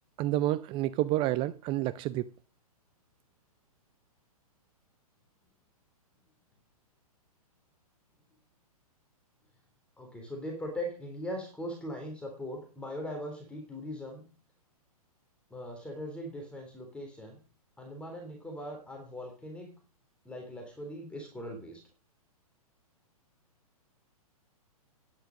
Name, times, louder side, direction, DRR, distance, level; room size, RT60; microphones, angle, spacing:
voice 1, 0.2-2.3, right 15 dB, 25° right, 0.5 m, -29 dB
voice 2, 10.0-14.2 15.5-17.4 17.8-19.7 20.3-21.8, equal, 5° left, 3.5 m, -40 dB
10.5 x 10.0 x 6.4 m
hypercardioid pair, 120°, 19 cm